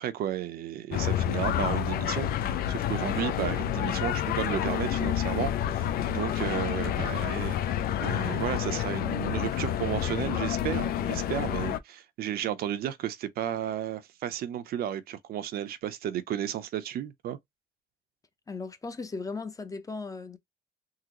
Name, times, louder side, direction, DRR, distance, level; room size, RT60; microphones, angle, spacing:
voice 1, 0.0-7.7 8.0-17.4, right 11 dB, 65° right, 0.6 m, -33 dB
sound 1, 0.9-11.8, left 11 dB, 65° left, 0.4 m, -29 dB
voice 2, 18.5-20.4, left 4 dB, 20° left, 0.6 m, -37 dB
3.8 x 2.0 x 2.9 m
cardioid pair, 110°, 17 cm